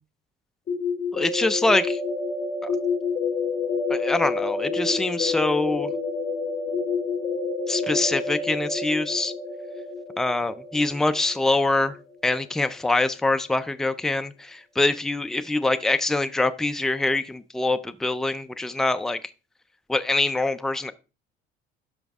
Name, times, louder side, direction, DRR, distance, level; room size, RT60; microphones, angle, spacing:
sound 1, 0.7-12.4, left 4 dB, 35° left, 3.1 m, -29 dB
voice 1, 1.1-2.0 3.9-5.9 7.7-9.3 10.2-11.9 12.2-19.2 19.9-20.9, left 2 dB, ahead, 0.4 m, -24 dB
12.5 x 5.1 x 3.5 m
cardioid pair, 145°, 21 cm